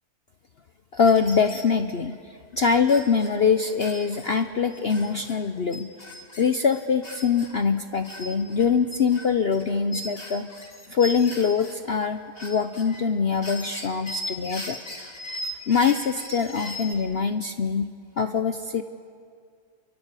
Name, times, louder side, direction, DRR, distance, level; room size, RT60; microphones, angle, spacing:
voice 1, 0.9-5.9 6.4-10.5 10.9-14.8 15.7-18.8, left 6 dB, 50° left, 8 dB, 0.8 m, -23 dB
sound 1, 1.0-1.7 2.1-2.2 2.6-5.4 5.7-7.6 8.0-11.8 12.1-13.0 13.4-17.0, left 1 dB, 35° left, 2.9 m, -38 dB
29.5 x 23.5 x 8.3 m, 2.2 s
omnidirectional pair, 1.7 m